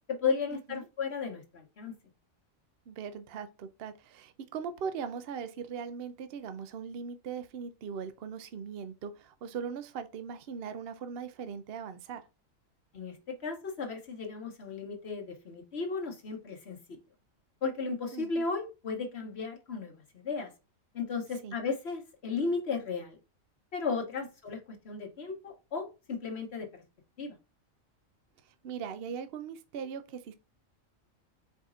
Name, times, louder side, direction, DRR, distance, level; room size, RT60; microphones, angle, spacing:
voice 1, 0.1-1.9 12.9-17.0 17.6-20.5 20.9-23.2 23.7-26.8 27.2-27.4, left 4 dB, 55° left, 1.2 m, -35 dB
voice 2, 2.9-12.2 18.1-18.4 21.4-21.6 28.4-30.3, right 6 dB, 60° right, 0.7 m, -40 dB
4.7 x 4.2 x 2.4 m
omnidirectional pair, 1.4 m